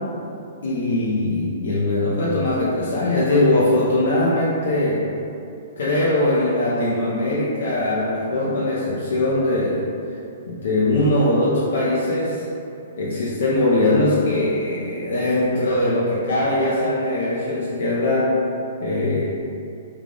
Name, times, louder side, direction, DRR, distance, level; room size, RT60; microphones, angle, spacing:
voice 1, 0.6-5.0 5.8-9.8 10.5-12.4 13.0-18.4 18.8-19.3, left 1 dB, 75° left, -7 dB, 0.6 m, -21 dB
3.3 x 2.3 x 3.7 m, 2.6 s
hypercardioid pair, 145°, 0 cm